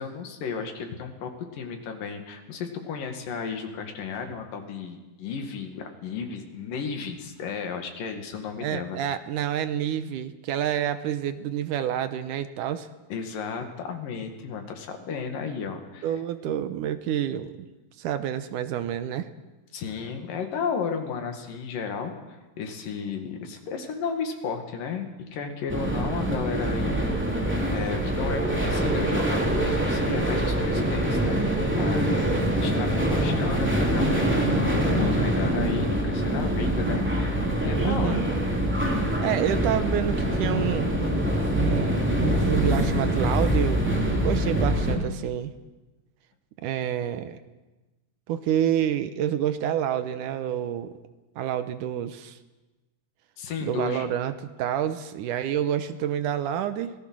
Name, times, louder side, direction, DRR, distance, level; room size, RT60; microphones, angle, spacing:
voice 1, 0.0-9.0 13.1-16.1 19.7-31.5 31.8-38.2 53.4-54.1, left 6 dB, 80° left, 5 dB, 3.7 m, -33 dB
voice 2, 8.6-12.9 16.0-17.5 18.0-19.3 37.8-38.3 39.2-40.9 41.5-45.5 46.6-47.4 48.3-51.0 51.4-52.4 53.6-56.9, right 10 dB, 75° right, 11 dB, 2.3 m, -28 dB
sound 1, 25.7-45.0, right 1 dB, 5° right, 2.8 m, -24 dB
25.5 x 18.5 x 6.3 m, 1.1 s
omnidirectional pair, 3.8 m